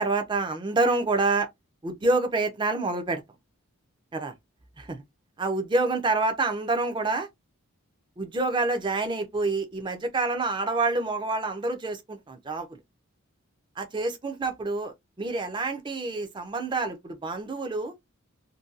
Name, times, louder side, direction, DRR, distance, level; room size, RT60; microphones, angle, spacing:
voice 1, 0.0-1.5 1.8-3.2 4.1-4.3 4.8-5.0 5.4-7.3 8.2-12.8 13.8-17.9, right 3 dB, 20° right, 0.4 m, -27 dB
2.6 x 2.2 x 2.4 m
head